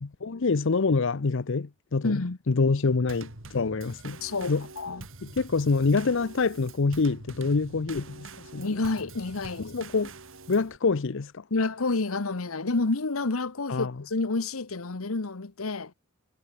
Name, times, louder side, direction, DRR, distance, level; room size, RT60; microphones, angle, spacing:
voice 1, 0.0-4.2 4.5-4.6 5.2-8.7 9.7-10.1 10.5-11.4 13.7-13.9, left 4 dB, 65° left, 0.7 m, -26 dB
voice 2, 2.0-2.4 4.2-5.1 8.6-9.8 11.5-15.9, left 3 dB, 85° left, 1.1 m, -29 dB
Drum kit / Snare drum / Bass drum, 3.1-10.8, right 3 dB, 65° right, 3.8 m, -45 dB
head